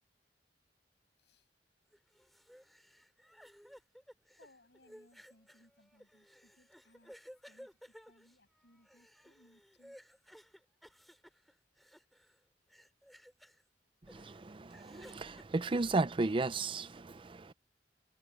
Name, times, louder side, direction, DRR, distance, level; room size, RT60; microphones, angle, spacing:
voice 1, 1.2-1.5 4.4-7.1 7.5-7.7 8.0-10.0, left 1 dB, 70° left, 7.6 m, -66 dB
sound 1, 1.9-12.4 12.7-13.6 14.1-15.4, equal, ahead, 2.7 m, -57 dB
voice 2, 14.1-17.5, right 3 dB, 30° right, 0.5 m, -34 dB
head